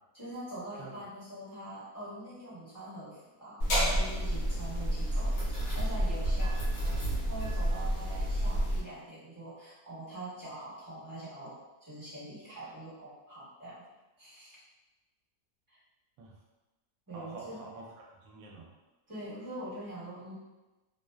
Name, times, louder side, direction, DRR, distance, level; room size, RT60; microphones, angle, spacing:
voice 1, 0.1-13.9 14.2-14.6 15.7-15.8 17.1-17.6 19.1-20.3, right 1 dB, 15° right, -12 dB, 0.9 m, -44 dB
sound 1, 3.6-8.8, equal, 70° left, 1.1 m, -30 dB
voice 2, 17.1-18.7, right 3 dB, 70° right, -1 dB, 1.0 m, -47 dB
2.7 x 2.0 x 2.2 m, 1.1 s
omnidirectional pair, 1.6 m